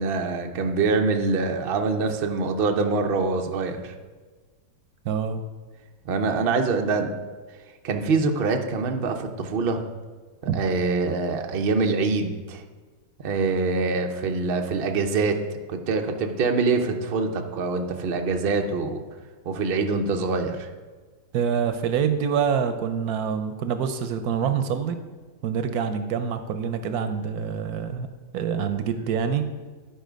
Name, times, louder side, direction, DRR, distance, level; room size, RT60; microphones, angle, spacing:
voice 1, 0.0-3.9 6.0-7.1 7.8-9.8 10.5-12.6 13.2-15.4 15.7-19.0 19.5-20.7, right 4 dB, 90° right, 4 dB, 0.5 m, -24 dB
voice 2, 5.0-5.4 10.5-10.6 21.3-25.0 25.4-28.1 28.3-29.4, right 7 dB, 70° right, 9 dB, 0.9 m, -26 dB
11.5 x 4.8 x 5.1 m, 1.4 s
omnidirectional pair, 2.1 m